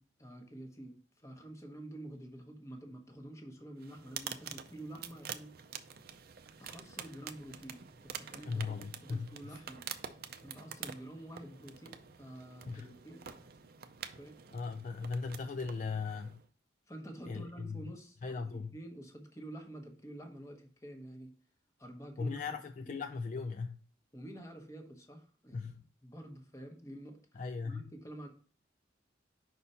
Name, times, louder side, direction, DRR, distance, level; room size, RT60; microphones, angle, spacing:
voice 1, 0.0-5.5 6.6-9.8 10.3-13.5 14.2-14.3 16.9-21.3 21.8-22.6 22.8-23.0 24.1-25.7 26.0-28.3, right 1 dB, 15° left, 1.0 m, -49 dB
sound 1, 3.8-16.5, right 8 dB, 55° right, 0.5 m, -47 dB
voice 2, 8.4-9.6 12.7-12.9 14.5-16.4 17.3-17.8 18.2-18.7 22.2-23.8 25.5-25.8 27.4-27.8, left 4 dB, 40° left, 0.3 m, -38 dB
5.4 x 4.2 x 5.5 m
head